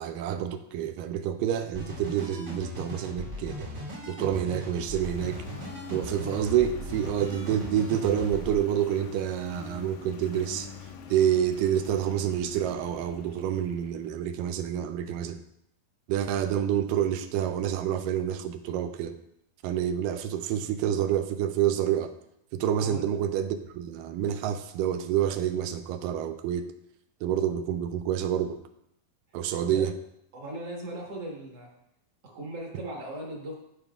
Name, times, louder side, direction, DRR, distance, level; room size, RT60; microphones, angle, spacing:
voice 1, 0.0-3.7 4.1-5.5 5.9-10.7 11.1-15.4 16.1-19.2 19.6-22.1 22.5-26.7 27.2-28.6 29.3-29.9, right 10 dB, 80° right, 9 dB, 2.0 m, -28 dB
sound 1, 1.7-8.6, equal, 30° right, 1.3 m, -38 dB
Engine, 5.0-14.4, left 6 dB, 80° left, 1.7 m, -44 dB
voice 2, 30.3-31.7 32.2-33.5, right 1 dB, 55° right, -2 dB, 1.9 m, -38 dB
14.5 x 5.4 x 2.4 m, 0.78 s
omnidirectional pair, 4.1 m